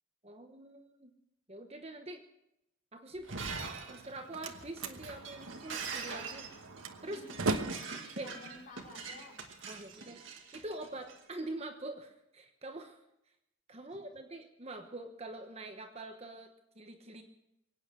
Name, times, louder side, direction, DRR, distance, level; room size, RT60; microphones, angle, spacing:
voice 1, 0.2-1.1 1.5-2.2 2.9-3.3 3.9-6.5 7.0-7.2 8.1-8.3 9.7-10.2 10.5-13.0 13.7-17.2, right 2 dB, 30° right, 5 dB, 1.0 m, -44 dB
Shatter, 3.1-11.2, right 4 dB, 65° right, 2.0 m, -43 dB
Slam, 3.9-9.8, right 3 dB, 85° right, 1.1 m, -40 dB
voice 2, 7.0-7.7 8.2-9.4 13.7-14.3, left 2 dB, 40° left, -2 dB, 4.4 m, -53 dB
23.0 x 8.9 x 6.3 m, 0.86 s
head